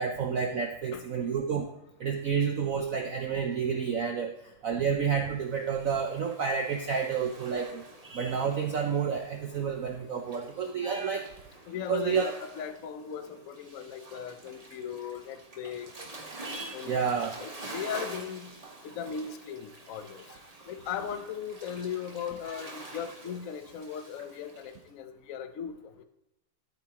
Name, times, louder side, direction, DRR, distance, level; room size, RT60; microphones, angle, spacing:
voice 1, 0.0-1.7 2.0-11.3 11.9-12.3 16.4-17.4 22.5-22.6, right 6 dB, 85° right, 4 dB, 0.7 m, -30 dB
Waves surf, 5.4-24.8, right 2 dB, 20° right, 1.1 m, -47 dB
voice 2, 11.7-15.9 16.7-17.0 17.4-18.5 18.8-20.2 20.7-26.0, left 8 dB, 75° left, 10 dB, 0.7 m, -38 dB
13.5 x 8.4 x 3.0 m, 0.87 s
omnidirectional pair, 2.4 m